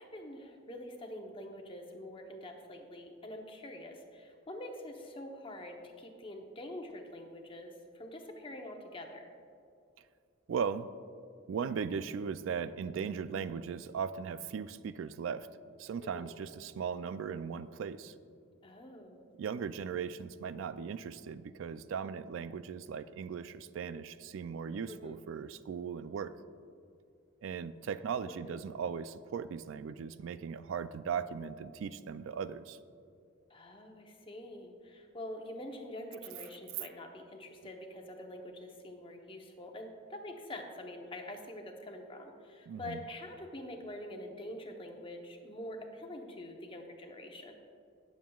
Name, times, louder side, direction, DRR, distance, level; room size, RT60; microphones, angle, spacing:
voice 1, 0.0-9.3 16.1-16.3 18.6-19.2 24.9-25.2 28.3-28.6 33.5-47.5, left 1 dB, 25° left, 3 dB, 0.8 m, -45 dB
voice 2, 10.5-10.9 11.5-15.5 15.8-18.1 19.4-26.3 27.4-32.8 42.7-43.0, right 6 dB, 70° right, 14 dB, 0.3 m, -38 dB
17.5 x 7.3 x 2.3 m, 2.4 s
head